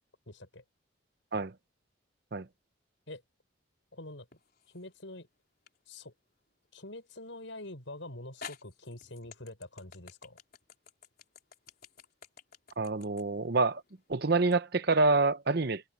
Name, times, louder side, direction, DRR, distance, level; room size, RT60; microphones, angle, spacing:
voice 1, 0.3-0.6 3.1-3.2 3.9-4.3 4.7-5.3 5.9-6.1 6.7-10.4, left 1 dB, 70° left, 5.7 m, -45 dB
sound 1, 4.3-4.9 5.7-5.8 7.6-7.7 8.4-14.6, left 6 dB, 50° left, 4.6 m, -50 dB
voice 2, 12.8-13.8 14.1-15.8, right 3 dB, 55° right, 0.9 m, -27 dB
head